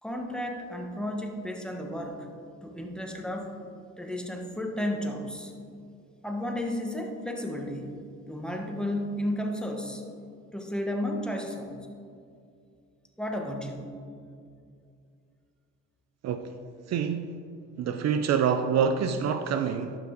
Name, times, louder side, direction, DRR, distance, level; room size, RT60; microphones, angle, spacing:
voice 1, 0.0-2.3 2.6-3.6 4.0-5.5 6.2-8.0 8.3-10.0 10.5-11.8 13.2-14.0, left 1 dB, 5° left, 2 dB, 1.2 m, -33 dB
voice 2, 16.9-17.3 17.8-20.0, right 7 dB, 60° right, 9 dB, 0.5 m, -26 dB
12.0 x 5.8 x 3.8 m, 2.4 s
cardioid pair, 80°, 30 cm